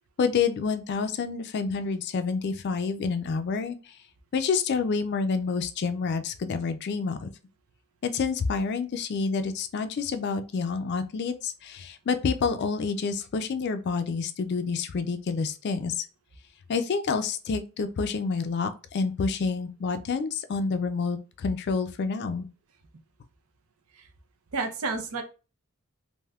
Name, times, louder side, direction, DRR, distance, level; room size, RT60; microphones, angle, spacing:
voice 1, 0.2-3.9 4.3-7.3 8.0-16.0 16.7-22.5, left 5 dB, 50° left, 0.3 m, -28 dB
voice 2, 24.5-25.2, right 3 dB, 85° right, 0.6 m, -30 dB
3.4 x 2.6 x 2.3 m
head